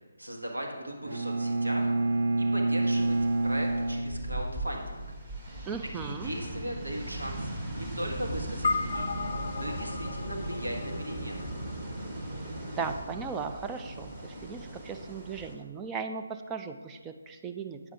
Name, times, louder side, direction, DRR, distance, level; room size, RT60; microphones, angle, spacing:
voice 1, 0.2-1.9 2.4-3.2 3.4-5.0 5.5-5.6 5.9-9.3 9.5-11.5, equal, 75° right, 1 dB, 1.5 m, -38 dB
Bowed string instrument, 1.0-4.9, right 2 dB, 50° right, 0.9 m, -28 dB
sound 1, 3.0-15.5, right 1 dB, 30° right, 1.4 m, -38 dB
voice 2, 5.6-6.3 12.8-17.8, right 5 dB, 10° right, 6 dB, 0.3 m, -37 dB
sound 2, 8.6-13.2, left 4 dB, 40° left, 0.5 m, -36 dB
9.0 x 7.1 x 3.4 m, 1.4 s
figure-of-eight pair, 145°, 0 cm